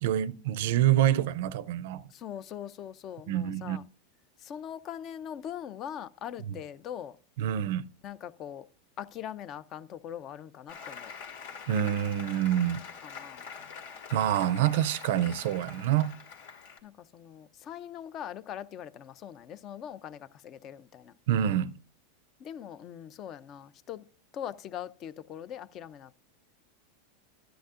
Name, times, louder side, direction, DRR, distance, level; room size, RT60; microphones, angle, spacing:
voice 1, 0.0-2.0 3.3-3.8 7.4-7.9 11.7-12.8 14.1-16.1 21.3-21.7, right 11 dB, 70° right, 0.5 m, -26 dB
voice 2, 2.1-3.8 4.4-7.2 8.0-8.7 9.0-11.1 13.0-13.5 16.8-21.1 22.4-24.0 24.3-26.1, left 9 dB, 40° left, 0.5 m, -41 dB
Applause, 10.7-16.8, left 6 dB, 80° left, 2.5 m, -45 dB
12.5 x 10.0 x 2.5 m
supercardioid pair, 120°, 0 cm